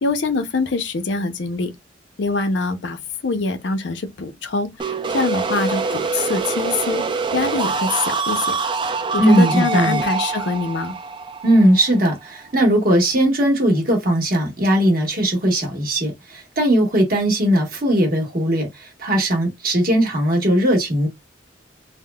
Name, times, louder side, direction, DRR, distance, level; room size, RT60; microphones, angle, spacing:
voice 1, 0.0-1.7 2.2-4.7 5.1-7.0 7.3-8.5 9.1-10.9, left 3 dB, 70° left, 0.6 m, -24 dB
sound 1, 4.8-12.5, right 4 dB, 25° right, 0.3 m, -25 dB
voice 2, 9.2-10.0 11.4-21.1, right 1 dB, 50° right, 1.2 m, -18 dB
3.5 x 2.0 x 2.2 m
head